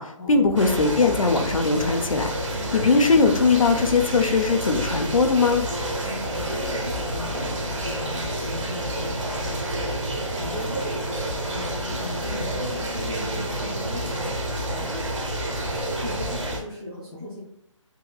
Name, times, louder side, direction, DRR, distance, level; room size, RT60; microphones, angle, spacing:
voice 1, 0.0-2.3 2.7-5.7, left 4 dB, 90° left, 5 dB, 0.7 m, -20 dB
sound 1, 0.6-16.6, right 1 dB, 65° right, 1.1 m, -29 dB
voice 2, 6.0-14.3 14.7-15.0 16.0-17.4, left 1 dB, 15° left, -8 dB, 0.4 m, -37 dB
3.7 x 2.8 x 2.3 m, 0.78 s
hypercardioid pair, 160°, 17 cm